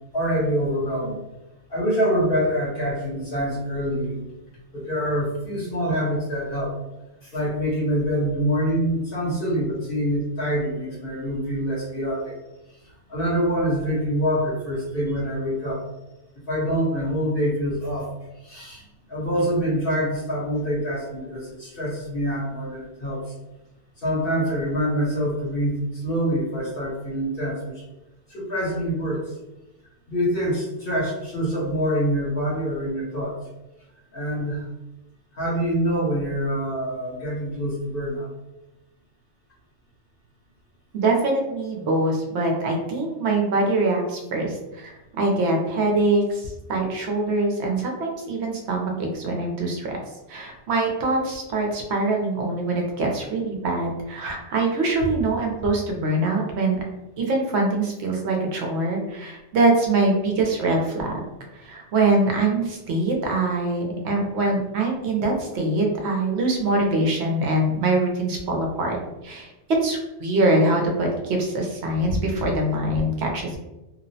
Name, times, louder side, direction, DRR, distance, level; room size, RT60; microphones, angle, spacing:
voice 1, 0.1-1.1 1.7-4.2 4.7-6.7 7.2-12.3 12.8-15.8 16.5-18.1 18.4-23.2 24.0-27.8 28.3-29.3 30.1-33.3 34.1-34.7 35.3-38.3, equal, 55° left, -5 dB, 1.1 m, -25 dB
voice 2, 40.9-50.0 50.3-56.8 57.2-61.2 61.5-69.0 69.2-69.5 69.8-73.6, right 2 dB, 70° right, 1 dB, 0.9 m, -23 dB
2.9 x 2.0 x 2.6 m, 0.98 s
omnidirectional pair, 1.2 m